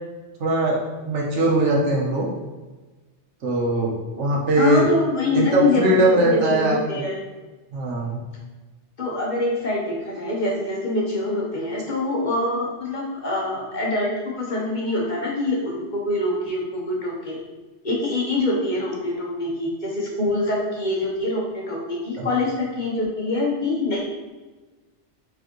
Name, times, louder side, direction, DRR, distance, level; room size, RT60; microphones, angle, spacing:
voice 1, 0.4-2.3 3.4-4.9 5.3-7.0 7.7-8.2 22.2-22.3, right 2 dB, 80° right, -2 dB, 1.2 m, -21 dB
voice 2, 4.6-7.2 9.0-17.4 17.8-24.0, left 2 dB, 45° left, -4 dB, 1.0 m, -25 dB
4.6 x 3.5 x 3.0 m, 1.2 s
omnidirectional pair, 1.2 m